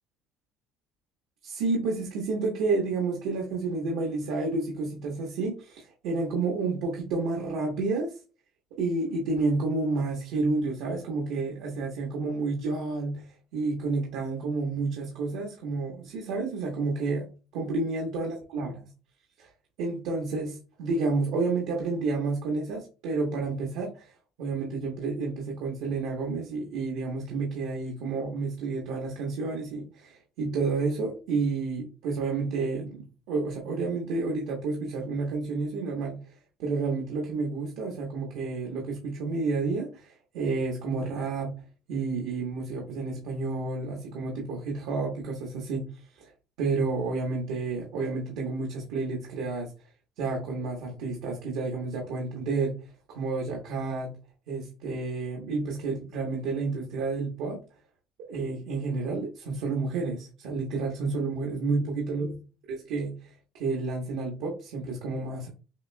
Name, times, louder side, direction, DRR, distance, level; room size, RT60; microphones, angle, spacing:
voice 1, 1.4-8.1 8.8-17.3 17.5-18.7 19.4-19.5 19.8-24.1 24.4-41.5 41.9-45.8 46.2-46.3 46.6-49.7 50.2-52.7 53.1-54.1 54.5-57.6 58.3-62.3 62.7-65.5, right 3 dB, 80° right, -1 dB, 1.2 m, -30 dB
6.3 x 2.6 x 2.2 m, 0.33 s
cardioid pair, 145°, 0 cm